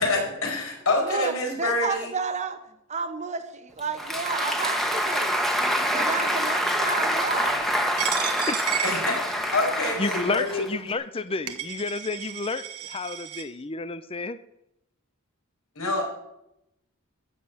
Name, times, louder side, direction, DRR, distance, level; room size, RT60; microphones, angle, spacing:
voice 1, 0.0-2.1 8.8-10.6 15.8-16.0, left 2 dB, 70° left, 1 dB, 5.2 m, -26 dB
voice 2, 1.6-2.6 2.9-5.5 5.9-7.7 8.1-8.2, right 4 dB, 30° right, 9 dB, 1.2 m, -31 dB
Applause, 3.8-10.9, equal, ahead, 1.4 m, -26 dB
Coin (dropping), 8.0-9.7 10.4-10.5 11.2-11.3 11.5-13.4, right 10 dB, 90° right, 1.4 m, -32 dB
voice 3, 10.0-14.4, left 3 dB, 25° left, 13 dB, 0.6 m, -31 dB
14.0 x 7.7 x 8.3 m, 0.85 s
head